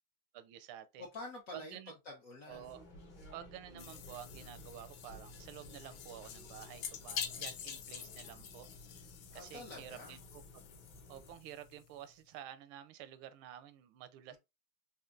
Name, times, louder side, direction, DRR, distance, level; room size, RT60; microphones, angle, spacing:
voice 1, 0.3-1.1 1.5-1.9 2.5-2.8 3.3-8.7 9.3-10.7 11.1-14.4, right 11 dB, 85° right, 1.4 m, -50 dB
voice 2, 1.0-2.7 9.3-10.2 14.3-14.4, left 2 dB, 60° left, 0.9 m, -48 dB
sound 1, 2.5-11.4, equal, 30° left, 0.8 m, -57 dB
sound 2, 3.8-11.9, left 8 dB, 90° left, 1.5 m, -47 dB
4.3 x 2.7 x 2.4 m
omnidirectional pair, 2.3 m